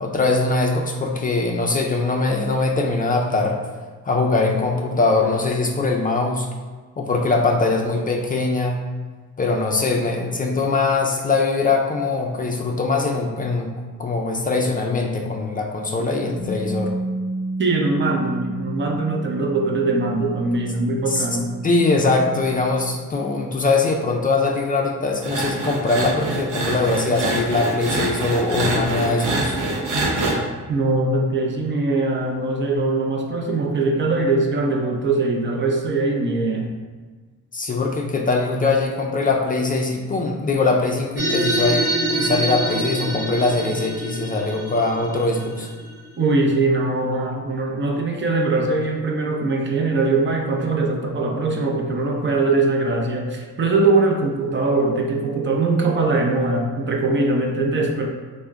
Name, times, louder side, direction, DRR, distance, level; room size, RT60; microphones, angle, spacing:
voice 1, 0.0-3.6 4.0-6.5 7.0-8.8 9.4-13.7 14.0-16.9 21.1-21.3 21.6-29.6 37.5-45.7, left 3 dB, 30° left, 1 dB, 0.4 m, -22 dB
Bass guitar, 16.4-22.6, right 2 dB, 5° right, 0.7 m, -31 dB
voice 2, 17.6-21.5 30.7-36.7 46.2-58.1, right 3 dB, 40° right, 2 dB, 0.6 m, -21 dB
sound 1, 25.2-30.3, right 2 dB, 90° right, 0.7 m, -25 dB
sound 2, 41.2-46.0, right 1 dB, 55° right, 0.9 m, -25 dB
3.5 x 2.1 x 3.4 m, 1.4 s
cardioid pair, 90°, 30 cm